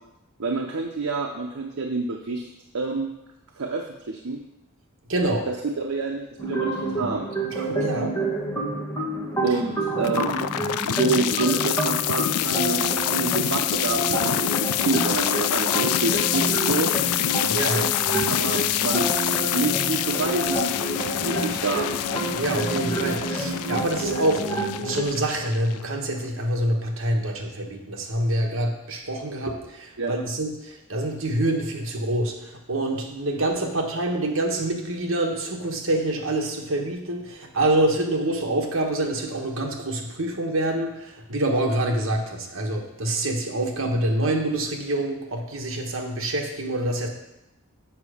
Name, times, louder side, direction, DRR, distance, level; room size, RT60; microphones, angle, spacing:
voice 1, 0.4-2.5 2.7-3.1 3.6-4.4 5.5-7.3 9.4-10.3 10.8-12.8 13.1-16.9 18.3-19.1 19.5-20.8 21.2-21.9 30.0-30.1, right 3 dB, 80° right, 2 dB, 0.7 m, -27 dB
voice 2, 5.1-5.5 7.5-8.2 17.5-17.9 22.3-47.1, right 1 dB, 65° right, 1 dB, 1.2 m, -26 dB
sound 1, 6.4-25.0, right 1 dB, 15° left, 1.5 m, -29 dB
sound 2, 10.0-26.0, left 12 dB, 85° left, 0.3 m, -26 dB
7.3 x 5.5 x 5.0 m, 0.91 s
head